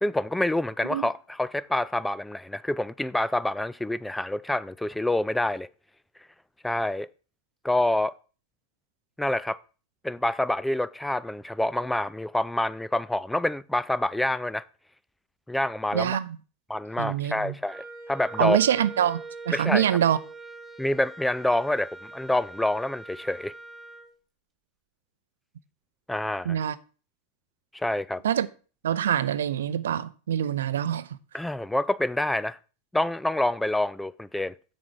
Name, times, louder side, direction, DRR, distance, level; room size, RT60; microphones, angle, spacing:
voice 1, 0.0-5.7 6.6-7.1 7.6-8.1 9.2-9.6 10.0-14.6 15.5-16.2 16.7-18.6 19.5-19.9 20.8-23.5 26.1-26.6 27.7-28.2 31.3-32.6 32.9-34.5, left 1 dB, 5° left, 0.3 m, -27 dB
voice 2, 15.9-16.4 17.0-17.5 18.4-20.2 26.4-26.8 28.2-28.5 28.8-31.1, right 10 dB, 60° right, 0.5 m, -25 dB
Wind instrument woodwind instrument, 17.7-24.1, right 3 dB, 15° right, 1.8 m, -42 dB
7.2 x 7.1 x 4.8 m
figure-of-eight pair, 90°, 0 cm